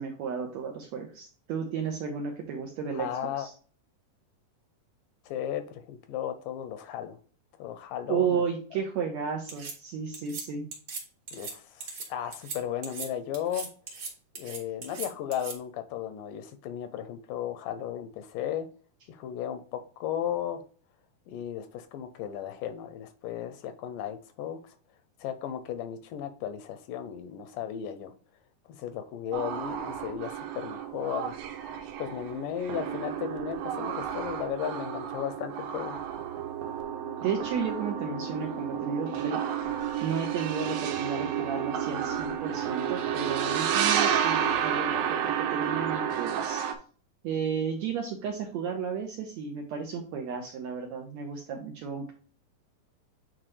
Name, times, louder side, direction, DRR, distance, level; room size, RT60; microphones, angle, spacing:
voice 1, 0.0-3.5 8.1-10.7 37.2-39.7 40.0-46.7 47.2-52.1, right 6 dB, 70° right, 3 dB, 1.7 m, -33 dB
voice 2, 2.9-3.5 5.3-7.2 7.6-8.4 11.3-13.7 14.4-18.7 19.1-20.6 21.3-24.8 25.2-28.1 28.7-31.4 32.0-36.0, left 9 dB, 80° left, 9 dB, 2.1 m, -35 dB
sound 1, 9.5-9.7 10.1-10.4 10.7-11.0 11.3-11.5 11.8-12.1 12.3-12.6 12.8-13.1 13.3-14.1 14.3-15.5, right 5 dB, 45° right, 2.0 m, -38 dB
sound 2, 29.3-46.8, right 9 dB, 90° right, 2.7 m, -31 dB
8.9 x 4.0 x 3.2 m, 0.40 s
omnidirectional pair, 4.1 m